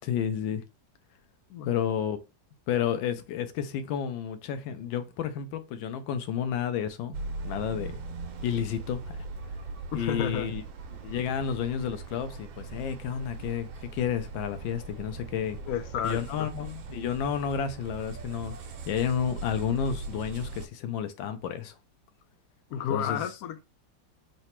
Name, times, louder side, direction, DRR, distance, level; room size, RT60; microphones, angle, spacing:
voice 1, 0.0-0.6 1.7-2.2 2.7-7.2 7.4-7.9 8.4-9.2 9.9-10.6 11.0-15.6 16.0-18.5 18.9-21.8 22.9-23.2, left 8 dB, 90° left, 1.3 m, -31 dB
sound 1, 7.1-20.7, right 3 dB, 85° right, 1.5 m, -40 dB
voice 2, 9.9-10.5 15.7-16.5 22.7-23.6, left 8 dB, 70° left, 0.9 m, -31 dB
3.9 x 2.2 x 4.3 m
omnidirectional pair, 2.0 m